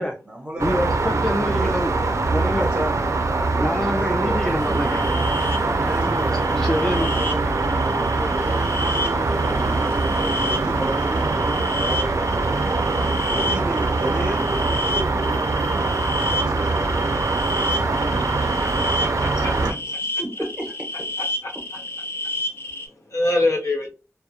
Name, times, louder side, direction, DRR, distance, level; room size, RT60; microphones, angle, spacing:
voice 1, 0.0-1.2 1.6-1.8 2.5-2.9 3.2-4.4 5.7-6.4 6.7-7.4 7.8-16.9 17.6-18.0 19.5-20.7, right 1 dB, 20° right, 0 dB, 1.0 m, -33 dB
voice 2, 0.6-2.0 2.3-2.7 3.5-5.1 6.6-7.1, left 1 dB, 10° left, 1 dB, 0.4 m, -25 dB
sound 1, 0.6-19.7, right 3 dB, 80° right, 0.4 m, -23 dB
sound 2, 4.3-11.8, right 1 dB, 35° right, 0.7 m, -34 dB
sound 3, 4.6-22.9, left 2 dB, 50° left, 0.6 m, -31 dB
voice 3, 18.4-19.5 22.1-23.9, left 2 dB, 90° left, -1 dB, 0.9 m, -26 dB
2.3 x 2.0 x 2.7 m, 0.31 s
wide cardioid pair, 70°, 5 cm